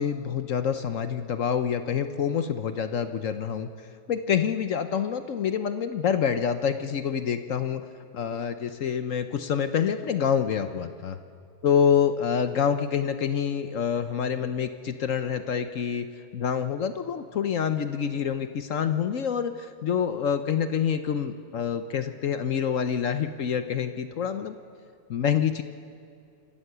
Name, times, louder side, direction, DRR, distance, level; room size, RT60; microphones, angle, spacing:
voice 1, 0.0-3.7 4.1-7.8 8.1-11.2 11.6-16.1 16.3-24.5 25.1-25.6, left 7 dB, 60° left, 9 dB, 1.0 m, -27 dB
27.0 x 14.5 x 6.8 m, 2.5 s
omnidirectional pair, 1.8 m